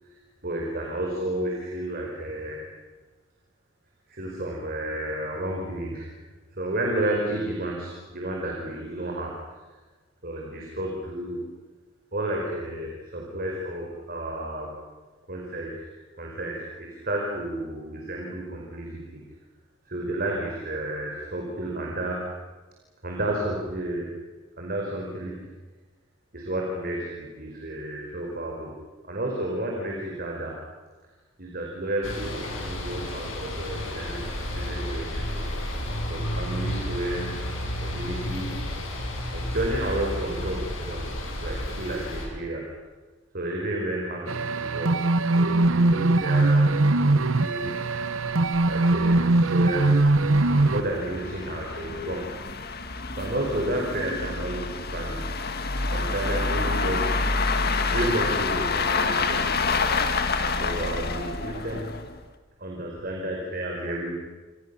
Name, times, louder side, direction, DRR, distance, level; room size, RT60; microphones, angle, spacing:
voice 1, 0.4-2.6 4.1-6.1 6.5-9.4 10.2-11.4 12.1-14.7 15.3-19.2 19.9-22.2 23.0-24.1 24.6-25.4 26.3-28.7 29.0-30.6 31.4-34.2 34.5-35.8 36.1-38.5 39.3-42.6 43.3-44.9 45.3-46.6 47.0-47.7 48.7-50.0 50.6-52.3 53.2-54.6 54.9-55.2 55.9-57.1 57.9-59.7 60.6-61.9 62.6-64.1, right 1 dB, 45° right, -1 dB, 5.0 m, -31 dB
sound 1, 32.0-42.3, left 1 dB, 70° left, 7.5 m, -32 dB
sound 2, 44.3-50.8, right 2 dB, 75° right, 1.0 m, -21 dB
sound 3, 45.8-45.9 46.1-46.2 46.7-46.8 47.1-47.2 47.8-62.2, left 4 dB, 50° left, 2.0 m, -28 dB
28.5 x 27.0 x 7.1 m, 1.3 s
head